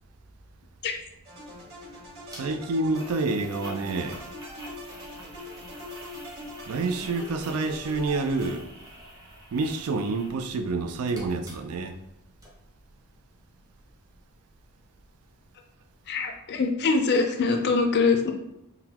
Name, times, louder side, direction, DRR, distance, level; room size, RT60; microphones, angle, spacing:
sound 1, 1.2-9.0, left 1 dB, 45° right, 1.4 m, -43 dB
sound 2, 2.3-2.4 2.9-10.4 10.7-12.1 12.4-12.5, equal, 15° right, 0.7 m, -46 dB
voice 1, 2.3-4.3 6.7-8.7 9.5-12.0, right 3 dB, 75° right, 0.4 m, -28 dB
voice 2, 16.1-18.3, left 4 dB, 50° left, 0.4 m, -23 dB
3.8 x 2.2 x 2.8 m
head